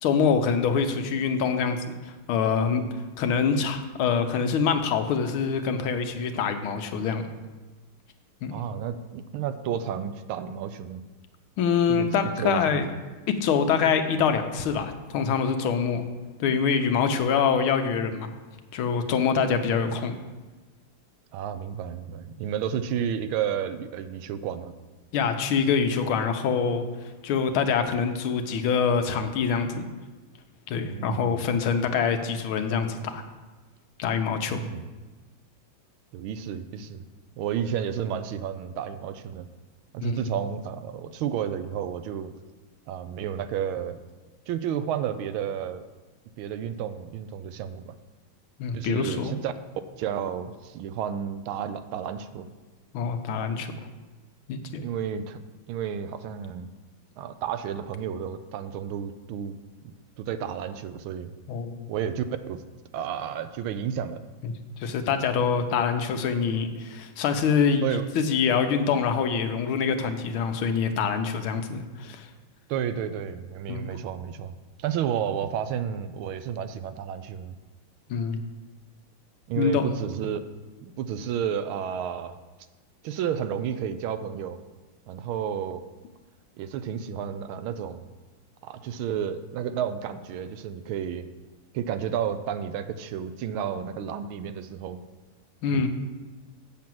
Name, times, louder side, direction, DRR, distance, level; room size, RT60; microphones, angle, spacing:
voice 1, 0.0-2.8 3.2-7.3 8.4-8.6 11.6-12.9 13.3-16.0 16.4-18.3 18.7-20.1 25.1-26.8 27.2-29.9 30.7-33.2 34.0-34.6 40.0-40.3 48.6-49.3 52.9-53.7 54.5-54.8 61.5-61.9 64.4-72.3 73.7-73.9 78.1-78.4 79.6-80.0 95.6-95.9, left 6 dB, 85° left, 7 dB, 1.6 m, -25 dB
voice 2, 8.5-11.0 11.9-12.8 21.3-24.7 30.8-31.4 34.5-34.9 36.1-37.0 37.4-39.5 39.9-42.3 42.9-44.0 44.5-45.8 46.4-47.9 48.7-49.5 50.0-52.5 54.8-55.4 55.7-56.7 57.2-59.6 60.2-61.3 61.9-62.6 62.9-64.2 67.8-68.0 72.7-77.5 79.5-80.4 80.8-82.4 83.0-84.6 85.1-85.8 86.6-88.1 88.6-91.3 91.7-95.0 95.7-95.9, right 8 dB, 80° right, 11 dB, 1.5 m, -31 dB
7.5 x 5.8 x 7.7 m, 1.3 s
omnidirectional pair, 2.3 m